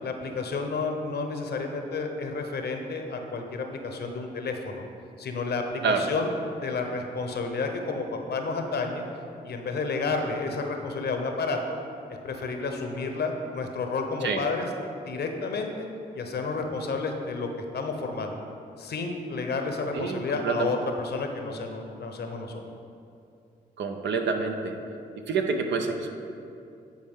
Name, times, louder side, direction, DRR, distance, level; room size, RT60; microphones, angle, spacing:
voice 1, 0.0-4.8 5.2-6.3 6.6-9.0 9.4-11.8 12.1-14.7 15.1-15.9 16.1-18.4 18.8-22.6, left 3 dB, 60° left, 4 dB, 0.9 m, -31 dB
voice 2, 19.9-20.8 23.8-24.7 25.3-26.1, right 5 dB, 70° right, 4 dB, 0.7 m, -27 dB
9.4 x 4.5 x 3.6 m, 2.6 s
hypercardioid pair, 45°, 19 cm